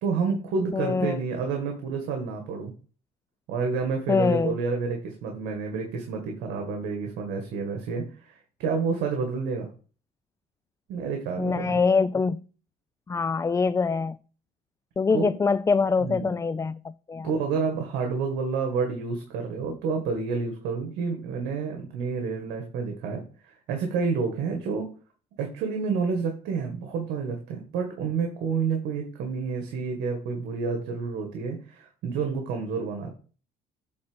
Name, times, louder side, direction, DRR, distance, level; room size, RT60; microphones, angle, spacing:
voice 1, 0.0-2.7 3.5-9.7 10.9-11.8 15.1-15.3 16.0-16.3 17.2-24.9 25.4-33.2, right 5 dB, 85° right, 1.8 m, -29 dB
voice 2, 0.7-1.2 4.1-4.6 11.4-12.4 13.1-14.2 15.0-17.3, left 4 dB, 15° left, 0.4 m, -24 dB
8.6 x 3.9 x 6.2 m
cardioid pair, 110°, 17 cm